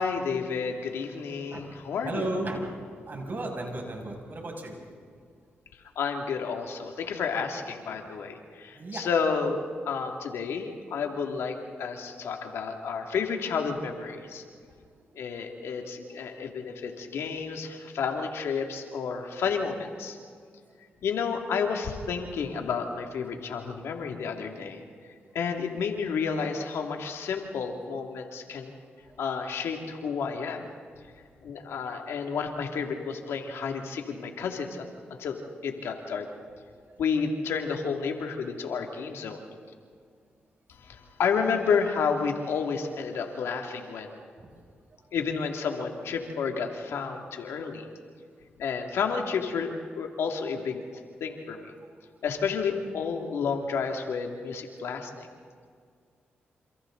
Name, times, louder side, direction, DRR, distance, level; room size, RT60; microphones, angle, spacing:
voice 1, 0.0-2.3 6.0-9.6 9.9-14.4 15.1-20.2 21.0-28.7 29.2-30.7 31.4-34.9 35.2-35.4 35.6-36.3 37.0-39.4 40.8-44.2 45.1-47.9 48.6-50.8 51.2-51.7 52.2-55.3, left 5 dB, 85° left, 3 dB, 2.5 m, -31 dB
voice 2, 2.0-2.6 3.1-4.7 8.7-9.0 36.8-37.0, right 2 dB, 50° right, 1 dB, 6.6 m, -34 dB
28.5 x 27.5 x 4.0 m, 2.1 s
cardioid pair, 60°, 4 cm